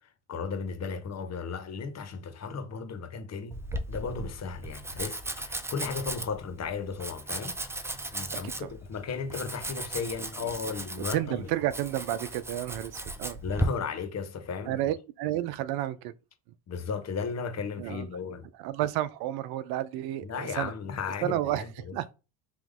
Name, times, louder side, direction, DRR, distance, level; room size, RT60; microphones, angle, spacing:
voice 1, 0.3-3.6 3.9-11.5 13.4-14.8 16.7-18.5 20.2-21.4, left 5 dB, 40° left, 1.1 m, -35 dB
Domestic sounds home sounds, 3.5-13.7, right 1 dB, 5° right, 0.5 m, -36 dB
voice 2, 11.0-13.4 14.7-16.1 17.8-18.1 18.5-20.7 21.1-22.1, right 13 dB, 65° right, 0.5 m, -31 dB
3.5 x 3.0 x 3.6 m
supercardioid pair, 85°, 41 cm